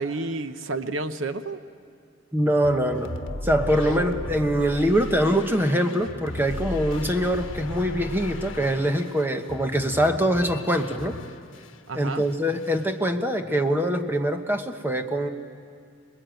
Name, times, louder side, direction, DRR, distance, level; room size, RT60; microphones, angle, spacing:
voice 1, 0.0-1.6 3.9-4.2 11.9-12.2, right 3 dB, 80° right, 10 dB, 0.9 m, -30 dB
voice 2, 2.3-3.1 3.4-11.1 11.9-15.3, equal, 10° right, 6 dB, 1.1 m, -23 dB
sound 1, 2.6-11.8 12.1-12.9, left 2 dB, 80° left, 1.1 m, -36 dB
26.0 x 21.0 x 9.1 m, 2.3 s
head